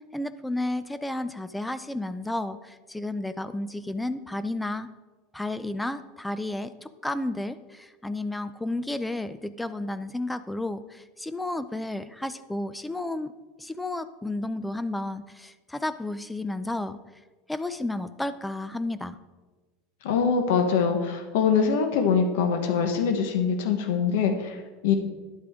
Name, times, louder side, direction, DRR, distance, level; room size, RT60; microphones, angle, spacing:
voice 1, 0.1-4.9 5.3-13.3 13.6-17.0 17.5-19.2, left 2 dB, 5° left, 12 dB, 0.4 m, -32 dB
voice 2, 20.0-24.9, left 6 dB, 75° left, 5 dB, 1.1 m, -24 dB
11.5 x 8.5 x 3.6 m, 1.3 s
supercardioid pair, 160°, 0 cm